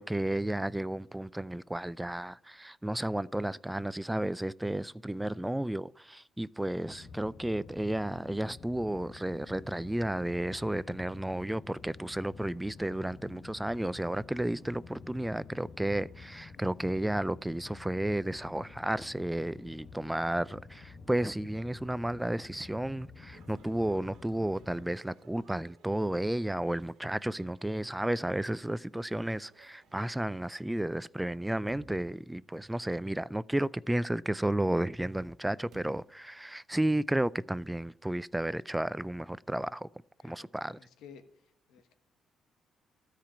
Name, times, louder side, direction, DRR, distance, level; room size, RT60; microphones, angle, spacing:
voice 1, 0.0-39.9 40.2-40.8, right 1 dB, 10° right, 0.3 m, -32 dB
sound 1, 6.8-24.9, left 4 dB, 65° left, 1.5 m, -50 dB
sound 2, 23.3-30.1, right 6 dB, 90° right, 1.6 m, -62 dB
sound 3, 31.7-33.2 35.7-36.3, right 4 dB, 70° right, 1.1 m, -55 dB
voice 2, 40.2-41.2 41.7-41.9, left 7 dB, 85° left, 1.3 m, -54 dB
13.0 x 5.0 x 8.7 m
cardioid pair, 90°, 0 cm